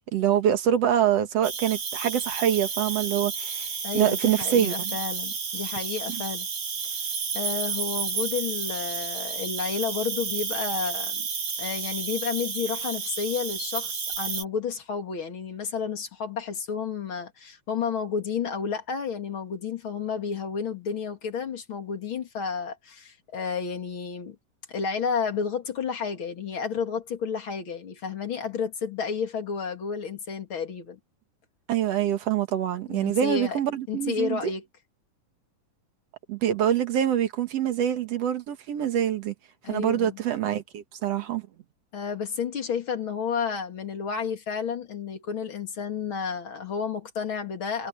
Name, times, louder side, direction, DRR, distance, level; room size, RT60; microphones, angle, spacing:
voice 1, 0.1-3.7 3.9-4.9 6.1-6.2 31.7-34.4 36.3-39.3 39.7-41.4, right 10 dB, 55° right, 2.4 m, -25 dB
Cricket, 1.4-14.4, right 6 dB, 75° right, 5.9 m, -31 dB
voice 2, 3.8-6.5 6.8-7.0 7.3-11.2 11.6-24.4 24.7-31.0 32.9-33.6 33.9-34.6 39.6-40.2 41.9-47.9, left 6 dB, 40° left, 2.9 m, -31 dB
omnidirectional pair, 3.9 m